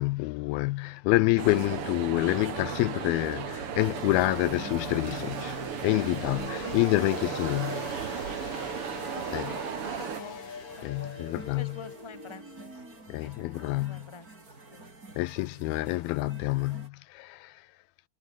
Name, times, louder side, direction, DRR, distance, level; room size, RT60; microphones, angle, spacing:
voice 1, 0.0-7.9 9.3-9.5 10.8-11.8 13.1-14.1 15.2-17.7, left 21 dB, 80° left, 2.4 m, -28 dB
sound 1, 1.2-14.0, left 5 dB, 50° left, 5.1 m, -43 dB
sound 2, 1.4-10.2, right 9 dB, 55° right, 1.7 m, -35 dB
sound 3, 3.8-16.9, right 2 dB, 20° right, 4.9 m, -49 dB
voice 2, 6.6-7.2 9.1-10.4 10.8-12.8 13.2-14.3 14.7-14.9, left 4 dB, 10° left, 1.5 m, -47 dB
omnidirectional pair, 4.5 m